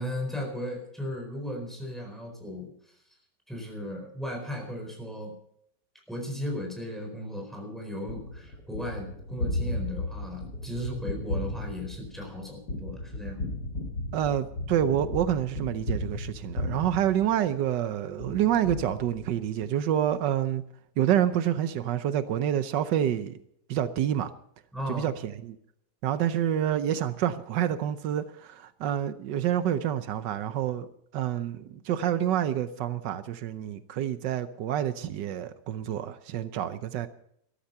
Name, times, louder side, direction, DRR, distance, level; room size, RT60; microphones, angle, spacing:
voice 1, 0.0-2.7 3.5-5.3 6.1-13.5 24.7-25.1, equal, ahead, 1 dB, 4.3 m, -36 dB
Gunshot gunfire, 8.1-17.8 18.2-19.6, left 1 dB, 75° left, 3.4 m, -35 dB
voice 2, 14.1-20.6 21.0-23.4 23.7-24.3 24.9-25.6 26.0-30.9 31.1-37.1, right 10 dB, 85° right, 12 dB, 1.4 m, -28 dB
13.5 x 13.5 x 5.6 m, 0.71 s
omnidirectional pair, 1.9 m